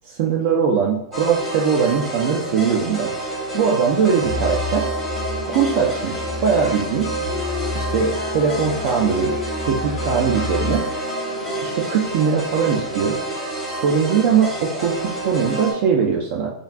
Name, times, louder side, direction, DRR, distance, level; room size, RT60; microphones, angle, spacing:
voice 1, 0.0-3.1 3.5-4.9 5.5-7.1 7.7-9.3 9.6-10.8 11.6-13.2 13.7-16.5, right 6 dB, 45° right, 0 dB, 0.3 m, -20 dB
sound 1, 1.1-15.7, right 2 dB, ahead, 0.8 m, -28 dB
Musical instrument, 4.2-11.0, left 3 dB, 25° left, 0.4 m, -31 dB
Wind instrument woodwind instrument, 4.9-13.2, left 5 dB, 80° left, 0.4 m, -35 dB
2.5 x 2.2 x 3.4 m, 0.78 s
supercardioid pair, 155°, 3 cm